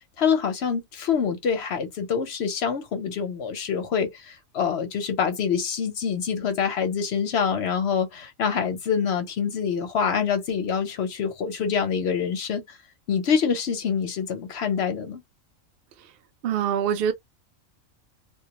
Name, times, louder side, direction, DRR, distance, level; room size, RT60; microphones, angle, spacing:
voice 1, 0.2-12.8 13.1-15.2, left 6 dB, 60° left, 0.7 m, -26 dB
voice 2, 16.4-17.1, right 8 dB, 60° right, 0.6 m, -24 dB
2.3 x 2.2 x 2.8 m
omnidirectional pair, 1.5 m